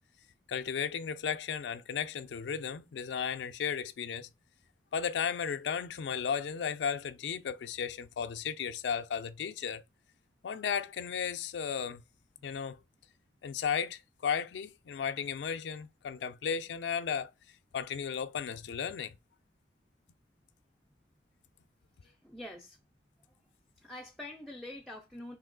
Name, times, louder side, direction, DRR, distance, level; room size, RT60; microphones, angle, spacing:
voice 1, 0.5-4.3 4.9-9.8 10.4-12.0 12.4-12.8 13.4-17.3 17.7-19.1, left 7 dB, 80° left, 0.4 m, -34 dB
voice 2, 22.0-22.8 23.2-23.3 23.8-25.4, left 1 dB, ahead, 0.4 m, -46 dB
3.0 x 2.8 x 3.7 m
head